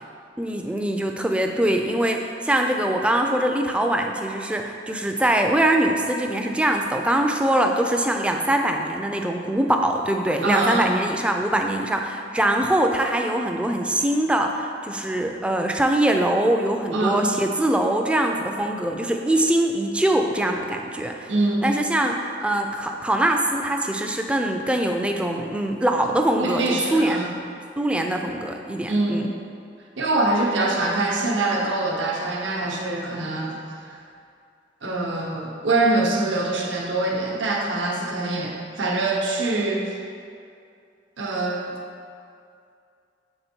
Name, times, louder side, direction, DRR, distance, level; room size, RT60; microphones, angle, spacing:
voice 1, 0.4-21.3 21.6-27.5 27.8-29.3, right 1 dB, 5° right, 3 dB, 0.3 m, -23 dB
voice 2, 10.4-10.9 16.9-17.2 21.3-21.7 26.4-27.3 28.9-29.3 30.0-33.9 34.8-39.9 41.2-41.6, right 2 dB, 80° right, 0 dB, 0.8 m, -24 dB
6.9 x 3.4 x 4.4 m, 2.4 s
head